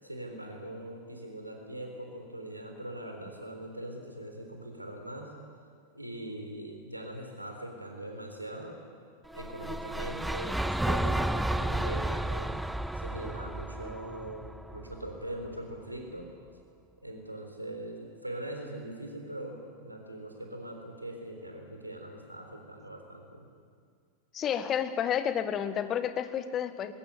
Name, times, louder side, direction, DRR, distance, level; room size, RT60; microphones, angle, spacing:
voice 1, 0.0-5.3 5.9-8.9 9.3-12.5 12.9-14.4 14.7-16.3 17.0-23.4, right 1 dB, 85° right, 3 dB, 3.9 m, -41 dB
sound 1, 9.3-15.5, right 1 dB, 5° right, 0.6 m, -32 dB
voice 2, 24.3-26.9, left 9 dB, 30° left, 11 dB, 1.4 m, -30 dB
21.5 x 18.5 x 8.6 m, 2.1 s
figure-of-eight pair, 90°, 0 cm